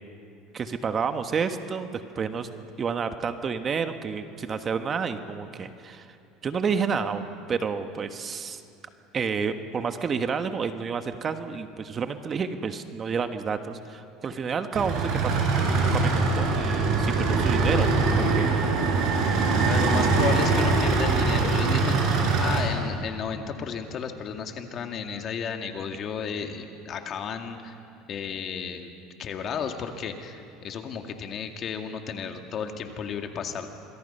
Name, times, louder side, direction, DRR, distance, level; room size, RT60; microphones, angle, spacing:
voice 1, 0.5-2.5 2.8-6.1 6.4-8.6 9.1-15.5 15.8-17.9 18.2-18.5, right 6 dB, 35° right, 8 dB, 1.3 m, -30 dB
sound 1, 14.7-22.6, right 3 dB, 65° right, 5.7 m, -23 dB
voice 2, 19.6-27.8 28.1-28.9 29.2-33.7, left 6 dB, 45° left, 5 dB, 2.1 m, -33 dB
27.0 x 22.5 x 5.6 m, 2.6 s
supercardioid pair, 95°, 0 cm